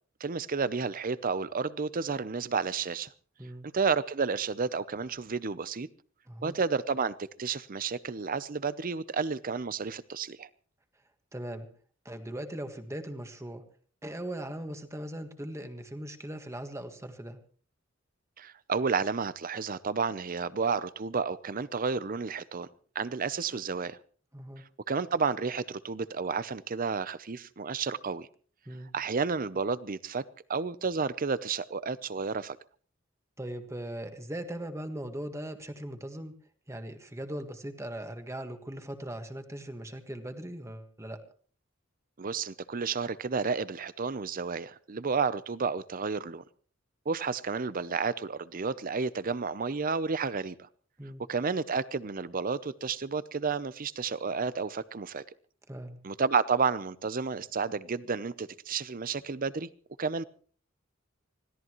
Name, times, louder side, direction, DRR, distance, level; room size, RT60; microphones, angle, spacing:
voice 1, 0.2-3.1 3.7-5.9 6.4-10.5 18.4-22.7 22.9-24.0 24.9-28.3 28.9-30.2 30.5-32.6 42.2-46.4 47.1-50.7 51.3-55.2 56.0-59.7 60.0-60.3, right 5 dB, 45° right, 17 dB, 0.7 m, -31 dB
voice 2, 6.3-6.6 11.3-11.7 12.0-13.6 14.0-17.4 24.3-24.6 28.6-28.9 33.4-36.3 36.7-41.2 51.0-51.2 55.7-56.0, right 1 dB, 15° right, 7 dB, 1.6 m, -39 dB
25.0 x 16.5 x 3.1 m, 0.44 s
head